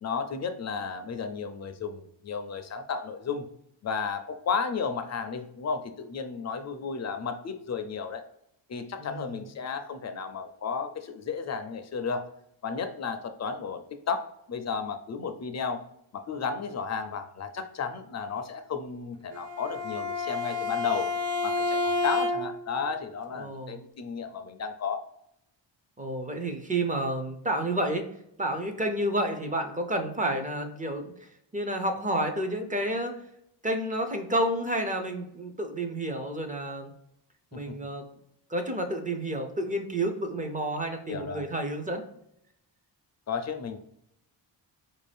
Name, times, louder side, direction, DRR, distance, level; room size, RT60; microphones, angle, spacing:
voice 1, 0.0-3.5 3.8-8.2 8.7-12.3 12.6-15.8 16.1-21.1 21.4-25.0 37.5-37.7 41.1-41.4 43.3-43.8, left 5 dB, 40° left, 8 dB, 0.4 m, -33 dB
Bowed string instrument, 19.3-22.7, left 3 dB, 85° right, 0.7 m, -29 dB
voice 2, 23.4-23.8 26.0-28.1 28.4-31.1 31.5-33.1 33.6-36.9 37.5-38.1 38.5-42.0, right 1 dB, 20° right, 4 dB, 0.5 m, -30 dB
4.7 x 2.6 x 3.2 m, 0.75 s
wide cardioid pair, 165°, 45 cm